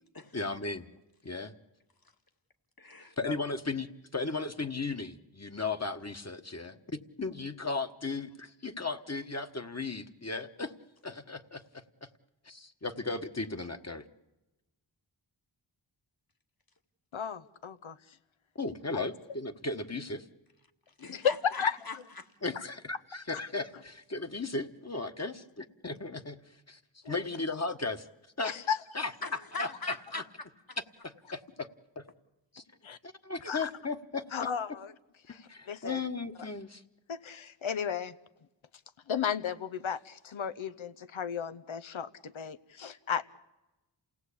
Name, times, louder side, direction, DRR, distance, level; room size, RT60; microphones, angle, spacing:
voice 1, 0.3-0.9 1.2-1.5 3.2-10.7 11.0-12.1 12.4-14.0 18.5-20.3 22.4-26.4 26.7-26.8 27.0-28.1 28.4-28.5 28.9-29.7 30.1-30.2 31.0-31.7 31.9-32.0 32.5-32.6 33.0-34.5 35.5-36.8, left 3 dB, 35° left, 7 dB, 1.4 m, -36 dB
voice 2, 2.8-3.4 21.0-22.3 29.2-30.2 30.7-30.8, left 4 dB, 50° left, 6 dB, 1.9 m, -41 dB
voice 3, 17.1-18.0 18.9-19.0 21.1-21.8 27.0-27.2 28.4-28.8 32.8-33.0 33.5-33.7 34.3-34.9 35.3-35.4 35.7-36.0 37.1-38.1 39.1-43.3, left 7 dB, 90° left, 14 dB, 0.9 m, -34 dB
28.5 x 17.5 x 8.5 m, 1.0 s
wide cardioid pair, 45°, 46 cm